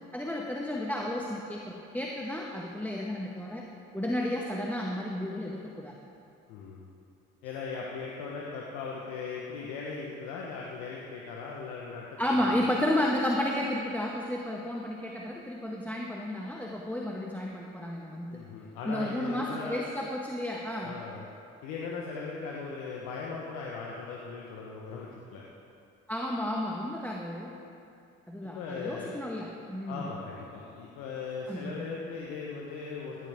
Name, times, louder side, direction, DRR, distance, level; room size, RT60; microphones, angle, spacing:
voice 1, 0.1-3.7 3.9-6.0 12.2-18.4 18.8-21.0 26.1-27.6 28.3-30.1 31.5-32.0, left 1 dB, 5° left, -1 dB, 1.4 m, -32 dB
voice 2, 6.5-6.9 7.4-12.7 18.3-19.8 20.8-21.2 21.6-25.5 28.4-29.1 29.9-33.3, left 4 dB, 85° left, -3 dB, 1.2 m, -39 dB
16.0 x 11.5 x 3.5 m, 2.6 s
hypercardioid pair, 45°, 33 cm